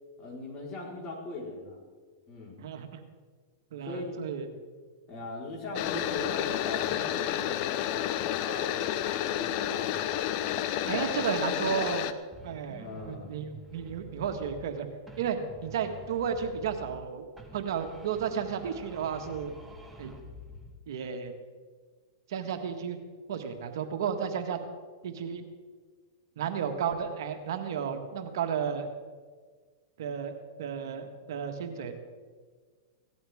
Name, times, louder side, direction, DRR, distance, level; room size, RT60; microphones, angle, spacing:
voice 1, 0.2-1.8 2.3-2.6 3.8-4.2 5.1-11.1 11.5-11.8 12.8-13.3, left 2 dB, 30° left, -3 dB, 4.4 m, -40 dB
voice 2, 2.6-3.0 3.7-4.5 10.9-12.0 12.4-14.9 15.2-17.2 17.5-19.5 20.0-20.1 20.9-21.3 22.3-23.0 23.3-24.6 25.0-25.4 26.4-28.9 30.0-30.3 30.6-31.9, right 7 dB, 70° right, 6 dB, 1.6 m, -33 dB
sound 1, 5.7-12.1, left 11 dB, 45° left, 0.8 m, -30 dB
sound 2, 12.3-14.8 15.1-17.1 17.4-20.8, equal, ahead, 1.6 m, -48 dB
17.5 x 13.5 x 3.6 m, 1.5 s
hypercardioid pair, 130°, 2 cm